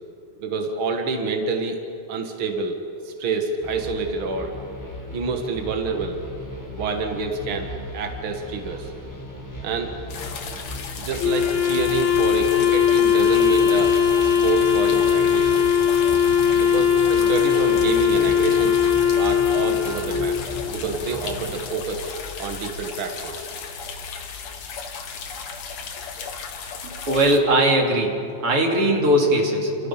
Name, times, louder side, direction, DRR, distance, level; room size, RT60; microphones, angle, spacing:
voice 1, 0.4-1.8 2.1-2.8 3.0-4.5 5.1-6.2 6.7-8.9 9.6-10.0 11.0-13.9 14.2-15.6 16.5-18.8 19.2-20.4 20.7-22.1 22.4-23.5, right 4 dB, 75° right, 4 dB, 1.2 m, -28 dB
sound 1, 3.6-21.5, left 1 dB, 5° left, 4.1 m, -36 dB
sound 2, 10.1-27.4, left 5 dB, 55° left, 2.0 m, -36 dB
Wind instrument woodwind instrument, 11.2-20.5, left 8 dB, 85° left, 5.7 m, -19 dB
voice 2, 26.8-28.2 28.4-29.9, right 1 dB, 35° right, 0 dB, 3.5 m, -20 dB
29.5 x 28.5 x 5.8 m, 2.6 s
omnidirectional pair, 5.2 m